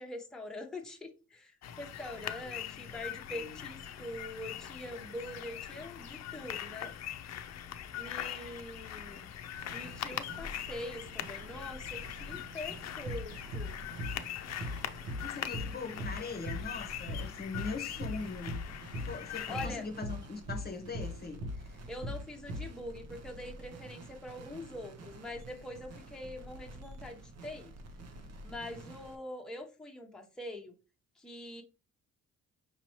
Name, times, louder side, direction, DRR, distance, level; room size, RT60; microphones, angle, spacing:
voice 1, 0.0-6.9 8.0-9.3 9.7-13.8 19.5-19.9 21.9-27.7 28.4-30.7 31.2-31.6, left 1 dB, ahead, 0.8 m, -44 dB
sound 1, 1.6-19.7, left 10 dB, 60° left, 0.5 m, -42 dB
voice 2, 3.3-3.7 15.2-18.6 19.0-21.8, left 4 dB, 30° left, 0.9 m, -41 dB
sound 2, 9.5-29.1, right 2 dB, 55° right, 0.9 m, -50 dB
sound 3, 13.1-13.3 13.5-13.7 14.0-14.2 14.6-14.8 15.1-15.3 15.5-15.7 16.0-16.2 16.5-16.7 17.1-17.3 17.5-17.7 18.0-18.2 18.5-18.7 18.9-19.1 19.6-19.8 20.0-20.2 20.5-20.7 20.9-21.1 21.4-21.6 22.0-22.2 22.5-22.7, left 1 dB, 80° right, 1.1 m, -38 dB
5.5 x 2.9 x 3.0 m
cardioid pair, 90°, 30 cm